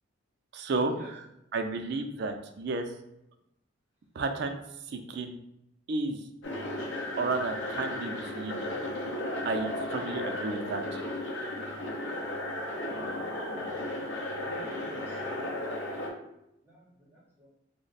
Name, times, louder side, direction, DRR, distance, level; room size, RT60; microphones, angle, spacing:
voice 1, 0.5-1.3 1.5-2.9 4.2-4.6 4.9-5.4 5.9-6.3 7.2-8.7 9.4-11.0, right 3 dB, 55° right, 5 dB, 0.3 m, -32 dB
sound 1, 6.4-16.1, left 1 dB, 60° left, 0.6 m, -35 dB
voice 2, 14.4-15.6 16.6-17.5, equal, 10° right, -6 dB, 0.9 m, -48 dB
3.1 x 2.1 x 4.0 m, 0.83 s
head